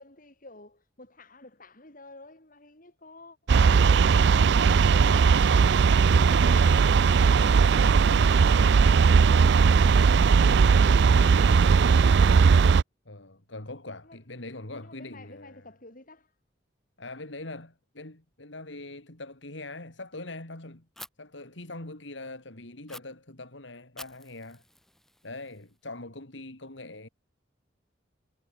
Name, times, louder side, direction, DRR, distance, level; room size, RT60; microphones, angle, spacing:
voice 1, 0.0-10.8 14.0-16.3, left 2 dB, 45° left, 6.6 m, -50 dB
sound 1, 3.5-12.8, right 5 dB, 60° right, 0.4 m, -19 dB
voice 2, 13.0-15.6 17.0-20.9 21.2-24.6 25.2-27.1, left 2 dB, 70° left, 3.2 m, -42 dB
Fire, 21.0-21.1 22.9-23.0 24.0-25.9, left 1 dB, ahead, 1.4 m, -48 dB
head